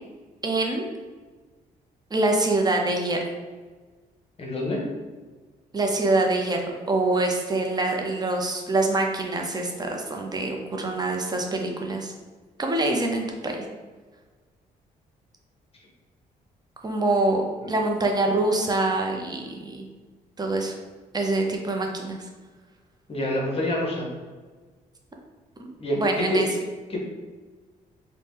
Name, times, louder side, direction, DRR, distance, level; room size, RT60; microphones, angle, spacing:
voice 1, 0.4-0.8 2.1-3.2 5.7-6.6 6.9-12.1 12.6-13.6 16.8-17.4 17.7-19.9 20.4-20.7 21.1-22.3 25.9-26.5, right 2 dB, 25° right, 1 dB, 0.5 m, -25 dB
voice 2, 4.4-4.8 17.6-17.7 23.1-24.1 25.8-26.5 26.9-27.0, left 1 dB, 35° left, -2 dB, 0.9 m, -26 dB
2.8 x 2.1 x 3.4 m, 1.4 s
cardioid pair, 80°, 17 cm